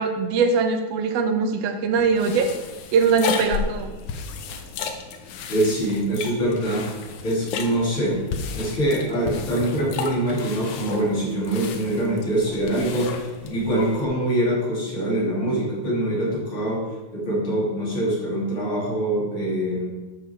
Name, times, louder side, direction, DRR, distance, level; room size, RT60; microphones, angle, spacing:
voice 1, 0.0-2.5 2.9-3.9, right 5 dB, 70° right, 7 dB, 1.6 m, -21 dB
sound 1, 2.0-14.0, left 5 dB, 75° left, 2.2 m, -33 dB
voice 2, 5.5-6.9 7.2-19.9, right 1 dB, 40° left, -5 dB, 3.8 m, -24 dB
12.5 x 6.1 x 4.7 m, 1.2 s
omnidirectional pair, 3.5 m